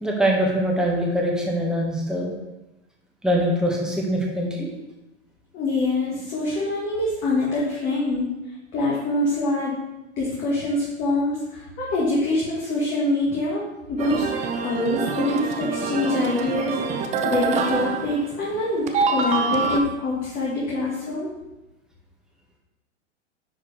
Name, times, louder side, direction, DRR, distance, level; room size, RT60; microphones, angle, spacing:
voice 1, 0.0-2.3 3.2-4.7, equal, ahead, -2 dB, 1.5 m, -23 dB
voice 2, 5.5-8.3 8.7-9.8 10.2-14.3 14.6-21.3, left 2 dB, 35° left, -6 dB, 2.0 m, -25 dB
sound 1, 14.0-18.6 18.9-19.8, right 5 dB, 20° right, 0.5 m, -26 dB
9.8 x 4.8 x 3.4 m, 0.98 s
figure-of-eight pair, 100°, 35 cm